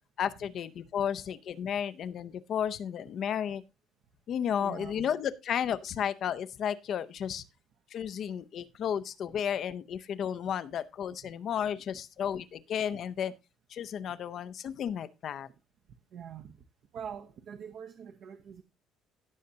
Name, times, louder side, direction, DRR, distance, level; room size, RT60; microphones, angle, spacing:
voice 1, 0.2-3.6 4.3-7.4 7.9-13.3 13.7-15.5, left 8 dB, 40° left, 0.6 m, -33 dB
voice 2, 4.6-5.1 11.2-11.3 12.9-13.0 16.1-16.6 16.9-18.6, right 8 dB, 50° right, 0.8 m, -44 dB
17.0 x 6.5 x 2.8 m
cardioid pair, 165°, 0 cm